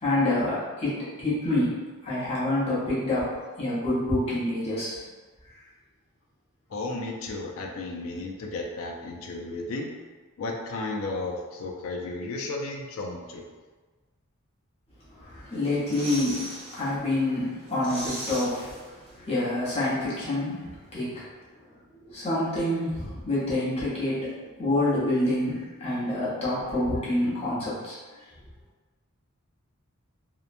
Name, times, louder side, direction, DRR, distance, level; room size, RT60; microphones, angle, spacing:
voice 1, 0.0-1.8 2.0-3.3 3.6-5.0 15.2-16.5 16.7-18.7 19.1-21.3 22.0-28.0, left 1 dB, 25° left, -9 dB, 0.8 m, -27 dB
voice 2, 6.7-9.9 10.4-13.4, left 2 dB, 65° left, 1 dB, 0.4 m, -33 dB
sound 1, 15.5-16.8 17.2-17.3 17.6-19.4 19.6-19.7, right 1 dB, 50° right, 0.9 m, -38 dB
2.8 x 2.1 x 2.5 m, 1.3 s
head